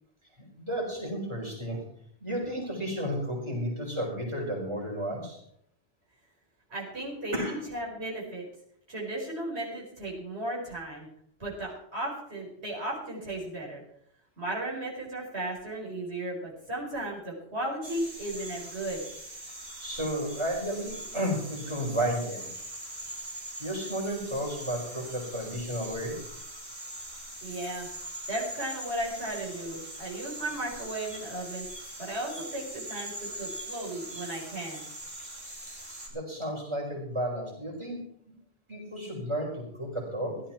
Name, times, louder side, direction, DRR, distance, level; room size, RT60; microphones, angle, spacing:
voice 1, 0.6-1.8 2.2-5.4 7.3-7.5 19.8-22.5 23.6-26.2 36.1-38.0 38.7-40.4, equal, 25° right, -2 dB, 4.5 m, -32 dB
voice 2, 6.7-8.5 8.9-11.1 11.4-13.8 14.4-19.0 27.4-27.9 28.3-31.6 32.0-34.8, right 1 dB, 75° right, -4 dB, 4.7 m, -35 dB
sound 1, 17.8-36.1, right 1 dB, 55° right, 3.1 m, -42 dB
16.0 x 12.0 x 4.4 m, 0.68 s
omnidirectional pair, 1.1 m